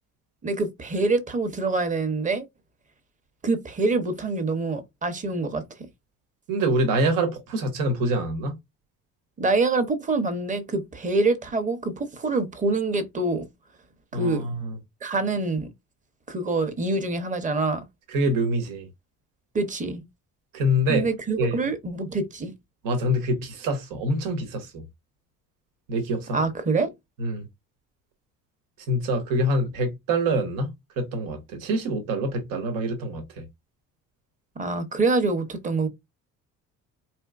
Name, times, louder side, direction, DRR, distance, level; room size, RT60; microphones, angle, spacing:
voice 1, 0.4-2.4 3.4-5.9 9.4-13.4 14.1-14.4 15.0-15.7 16.3-17.8 19.5-20.0 20.9-22.5 26.3-26.9 34.6-35.9, right 3 dB, 25° right, 0.8 m, -25 dB
voice 2, 6.5-8.6 14.1-14.8 18.1-18.9 20.5-21.0 21.4-21.6 22.8-24.8 25.9-26.4 27.2-27.4 28.9-33.4, right 1 dB, 90° right, 1.3 m, -25 dB
4.3 x 3.1 x 2.5 m
cardioid pair, 125°, 32 cm